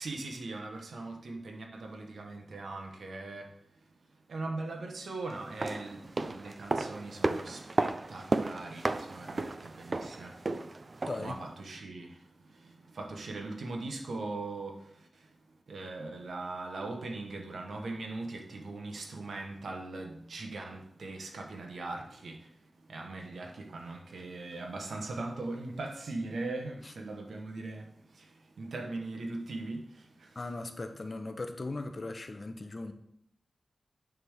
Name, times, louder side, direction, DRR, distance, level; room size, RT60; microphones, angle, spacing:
voice 1, 0.0-3.5 4.3-10.3 11.2-12.2 12.6-14.8 15.7-22.4 22.9-27.8 28.2-28.3 28.6-29.8 30.2-30.3, right 2 dB, 80° right, 2 dB, 1.3 m, -40 dB
sound 1, 5.4-11.4 11.7-11.8, right 2 dB, 45° right, 0.5 m, -34 dB
voice 2, 30.3-32.9, left 2 dB, 45° left, 7 dB, 1.0 m, -38 dB
9.5 x 3.7 x 6.6 m, 0.70 s
cardioid pair, 65°, 0 cm